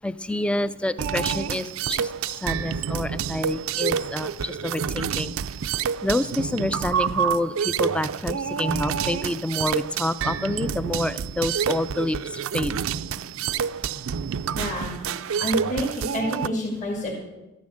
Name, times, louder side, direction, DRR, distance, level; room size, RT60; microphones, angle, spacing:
voice 1, 0.0-2.1 2.4-5.3 6.0-12.7, left 1 dB, 5° left, 15 dB, 0.4 m, -28 dB
sound 1, 1.0-16.5, right 7 dB, 70° right, 0.4 m, -28 dB
voice 2, 14.5-14.9 15.4-17.1, equal, 35° left, -4 dB, 2.3 m, -28 dB
12.5 x 10.5 x 6.4 m, 1.0 s
head